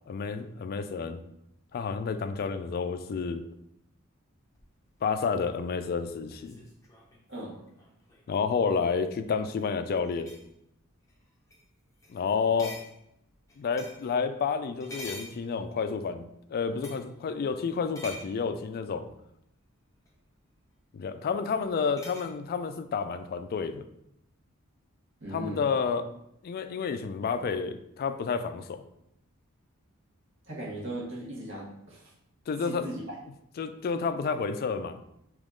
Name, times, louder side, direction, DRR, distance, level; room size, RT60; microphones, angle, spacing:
voice 1, 0.1-1.2 1.7-3.5 5.0-6.6 8.3-10.3 12.1-12.8 13.6-19.1 20.9-23.8 25.3-26.1 26.4-28.8 32.5-32.9 33.6-35.0, left 5 dB, 45° left, 10 dB, 0.3 m, -30 dB
sound 1, 4.5-8.3 9.4-9.7 10.0-10.5 11.1-11.2 11.5-11.6 12.0-12.2 12.6-14.1 14.8-15.9 16.8-17.1 17.9-18.4 20.1-20.2 22.0-22.3, left 1 dB, 15° left, 0.7 m, -46 dB
voice 2, 25.2-25.6 30.4-32.1 32.6-33.0, right 1 dB, 65° right, -4 dB, 1.4 m, -38 dB
3.5 x 3.0 x 3.7 m, 0.78 s
head